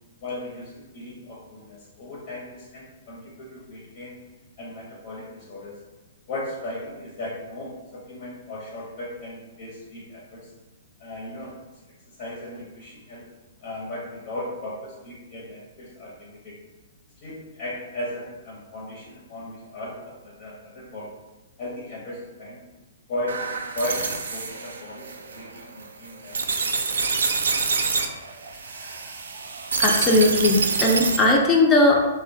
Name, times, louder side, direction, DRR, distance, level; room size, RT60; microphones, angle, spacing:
voice 1, 0.2-4.1 4.6-5.8 6.3-10.5 11.0-11.5 12.1-13.2 13.6-16.5 17.2-21.1 21.6-22.6 23.1-23.5 23.7-26.4 26.7-27.1, left 1 dB, 50° left, -5 dB, 0.7 m, -36 dB
sound 1, 23.3-31.4, right 4 dB, 75° right, 0.3 m, -27 dB
voice 2, 29.8-32.0, left 2 dB, 20° left, -1 dB, 0.4 m, -18 dB
3.0 x 2.1 x 2.7 m, 1.1 s
figure-of-eight pair, 120°, 0 cm